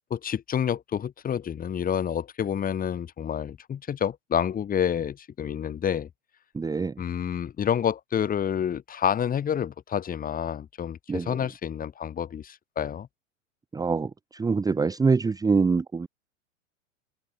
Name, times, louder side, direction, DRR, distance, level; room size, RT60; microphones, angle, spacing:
voice 1, 0.1-6.1 7.0-13.1, left 8 dB, 20° left, 2.8 m, -28 dB
voice 2, 6.5-6.9 11.1-11.4 13.7-16.1, right 4 dB, 10° right, 1.2 m, -25 dB
hypercardioid pair, 100°, 38 cm